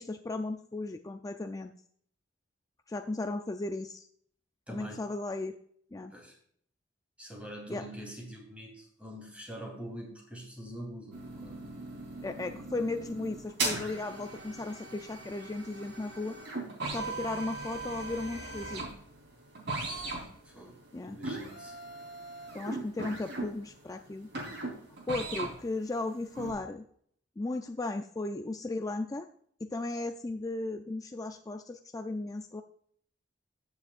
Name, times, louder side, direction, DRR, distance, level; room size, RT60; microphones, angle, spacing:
voice 1, 0.0-1.7 2.9-4.1 4.7-5.5 5.9-6.1 7.7-7.8 12.2-16.4 16.9-18.8 20.9-21.2 22.5-24.3 25.1-26.8 27.4-29.3 29.6-32.6, left 2 dB, 20° left, 6 dB, 0.4 m, -36 dB
voice 2, 4.7-5.0 6.1-6.4 7.2-11.6 19.8-21.7, equal, 5° right, 0 dB, 3.3 m, -45 dB
sound 1, 11.1-25.7 26.0-26.5, right 3 dB, 65° right, 3.6 m, -39 dB
15.5 x 7.2 x 2.5 m, 0.63 s
head